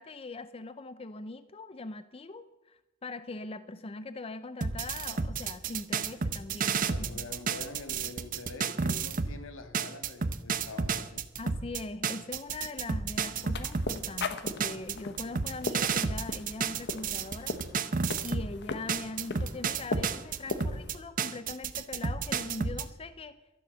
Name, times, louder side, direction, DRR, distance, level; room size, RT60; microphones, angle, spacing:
voice 1, 0.0-7.2 11.4-17.5 18.2-23.4, left 3 dB, 30° left, 0.5 m, -41 dB
sound 1, 4.6-9.4 9.7-18.5 18.9-22.9, right 5 dB, 45° right, 0.7 m, -31 dB
voice 2, 6.9-11.3, left 2 dB, 80° left, 1.6 m, -45 dB
sound 2, 13.4-21.0, left 3 dB, 60° left, 1.1 m, -39 dB
12.5 x 11.0 x 6.8 m
head